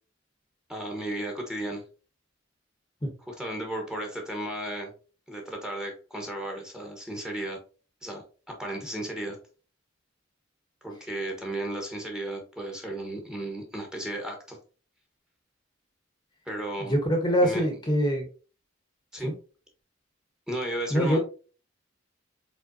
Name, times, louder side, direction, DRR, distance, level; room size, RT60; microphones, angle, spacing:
voice 1, 0.7-1.8 3.2-4.9 5.3-7.6 8.0-9.4 10.8-14.6 16.5-17.0 17.4-17.6 19.1-19.3 20.5-21.2, right 1 dB, 5° right, 1 dB, 1.1 m, -34 dB
voice 2, 16.8-18.3 19.2-19.3 20.9-21.2, equal, 20° left, 3 dB, 0.9 m, -24 dB
5.0 x 3.8 x 2.7 m, 0.37 s
head